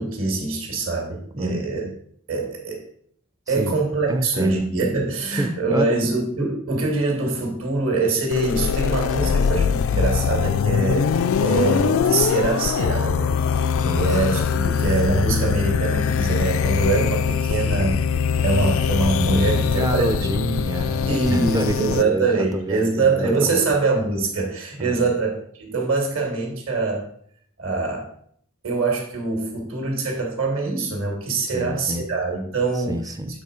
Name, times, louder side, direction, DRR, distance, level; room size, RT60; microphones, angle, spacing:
voice 1, 0.0-1.8 2.3-2.8 3.5-11.1 11.4-13.7 13.9-18.0 18.4-20.3 21.1-27.1 27.6-28.1 28.6-33.0, right 3 dB, 65° right, 0 dB, 2.2 m, -24 dB
voice 2, 1.3-1.9 3.5-3.8 4.1-4.6 5.4-5.9 9.2-9.8 13.8-14.4 19.3-23.7 24.8-25.1 31.5-32.1 32.8-33.4, right 1 dB, 15° right, 7 dB, 0.4 m, -28 dB
sound 1, 8.3-22.0, left 6 dB, 65° left, 0.3 m, -22 dB
8.0 x 3.6 x 4.9 m, 0.63 s
head